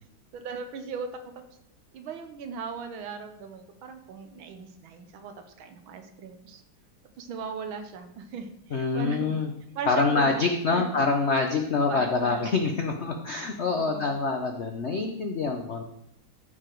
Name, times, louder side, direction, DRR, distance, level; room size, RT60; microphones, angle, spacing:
voice 1, 0.3-1.4 1.9-6.6 7.2-9.4 9.7-10.4 10.7-11.0 11.9-12.5 13.8-14.1, right 6 dB, 75° right, 7 dB, 1.7 m, -38 dB
voice 2, 8.7-9.5 9.9-15.8, left 4 dB, 70° left, 4 dB, 0.6 m, -26 dB
13.5 x 4.9 x 4.6 m, 0.78 s
omnidirectional pair, 2.3 m